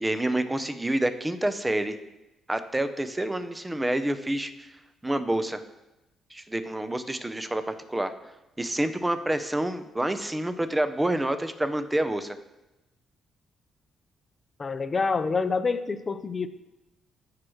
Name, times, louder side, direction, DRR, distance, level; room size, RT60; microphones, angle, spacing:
voice 1, 0.0-2.0 2.5-4.7 5.0-5.6 6.3-8.1 8.6-12.4, right 1 dB, 10° right, 10 dB, 0.6 m, -28 dB
voice 2, 14.6-16.5, left 4 dB, 35° left, 11 dB, 0.5 m, -27 dB
14.0 x 4.8 x 3.1 m, 0.98 s
cardioid pair, 90°, 0 cm